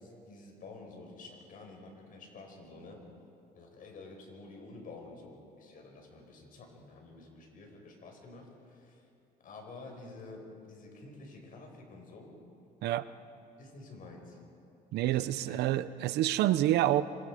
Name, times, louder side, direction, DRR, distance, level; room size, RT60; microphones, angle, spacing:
voice 1, 0.0-3.0 3.5-9.1 9.4-12.3 13.6-14.4 15.0-15.7, left 3 dB, 55° left, 2 dB, 5.8 m, -50 dB
voice 2, 14.9-17.0, right 13 dB, 80° right, 14 dB, 0.8 m, -27 dB
27.0 x 26.0 x 5.1 m, 2.6 s
cardioid pair, 110°, 17 cm